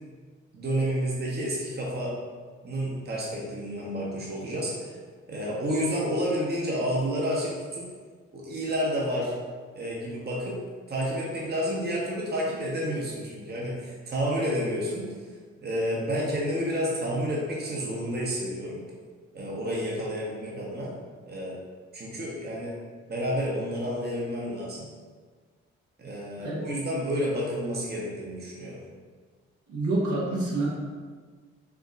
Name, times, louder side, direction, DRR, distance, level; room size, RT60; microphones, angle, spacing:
voice 1, 0.5-2.1 2.6-4.9 5.3-7.8 8.3-9.3 9.7-10.6 10.9-15.1 15.6-18.8 19.3-20.9 21.3-21.6 21.9-22.7 23.1-24.9 26.0-28.8, equal, 30° right, -4 dB, 1.0 m, -30 dB
voice 2, 29.7-30.7, right 2 dB, 60° right, -5 dB, 1.2 m, -27 dB
4.8 x 2.9 x 2.6 m, 1.5 s
hypercardioid pair, 45°, 33 cm